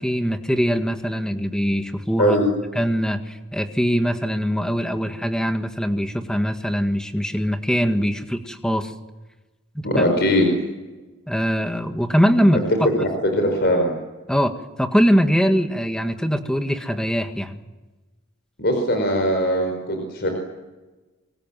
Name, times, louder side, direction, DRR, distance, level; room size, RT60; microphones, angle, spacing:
voice 1, 0.0-2.4 2.7-8.9 9.8-10.0 11.3-12.9 14.3-17.6, equal, 5° left, 6 dB, 1.8 m, -22 dB
voice 2, 9.8-10.5 13.0-13.9 18.6-20.3, equal, 50° left, 3 dB, 5.3 m, -20 dB
28.5 x 24.5 x 7.6 m, 1.2 s
head